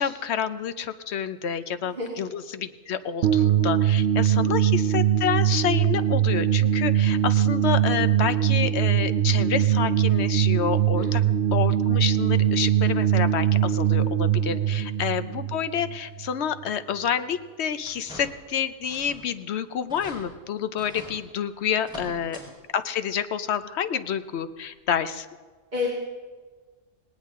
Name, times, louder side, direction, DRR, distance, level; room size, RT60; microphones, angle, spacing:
voice 1, 0.0-11.2 11.5-22.4 22.7-25.3, left 8 dB, 65° left, 12 dB, 1.0 m, -28 dB
voice 2, 1.8-2.1 4.3-4.4 10.9-11.1 14.5-14.7 25.7-25.9, left 5 dB, 35° right, -4 dB, 2.5 m, -32 dB
sound 1, 3.2-16.3, right 10 dB, 65° right, 0.9 m, -22 dB
sound 2, 17.8-18.5 18.8-19.3 19.6-19.7 19.9-20.2 20.8-21.1 21.8-22.5 22.8-22.9 24.3-24.4 24.9-25.0, equal, 5° right, 4.3 m, -44 dB
19.0 x 18.5 x 3.7 m, 1.4 s
omnidirectional pair, 1.3 m